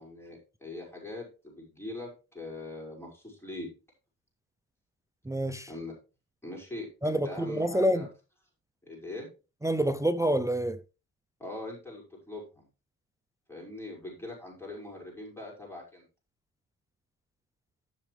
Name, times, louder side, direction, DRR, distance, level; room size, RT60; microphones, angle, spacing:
voice 1, 0.0-3.7 5.7-5.9 6.4-8.1 8.9-9.3 11.4-12.6 13.5-16.0, left 2 dB, 5° left, 5.5 m, -42 dB
voice 2, 5.3-5.7 7.0-8.1 9.6-10.8, equal, 10° right, 0.4 m, -27 dB
14.5 x 6.0 x 3.3 m
cardioid pair, 110°, 35 cm